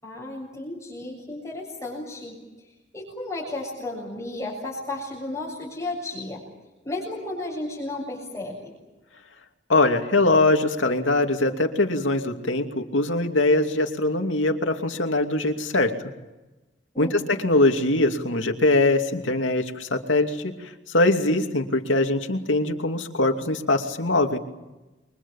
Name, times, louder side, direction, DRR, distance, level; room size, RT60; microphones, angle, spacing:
voice 1, 0.0-2.3 2.9-6.4 6.8-8.7 16.9-17.3, left 2 dB, 15° left, -4 dB, 7.5 m, -33 dB
voice 2, 9.7-15.9 17.0-24.4, left 2 dB, 85° left, 4 dB, 2.7 m, -22 dB
29.5 x 24.0 x 7.3 m, 1.1 s
head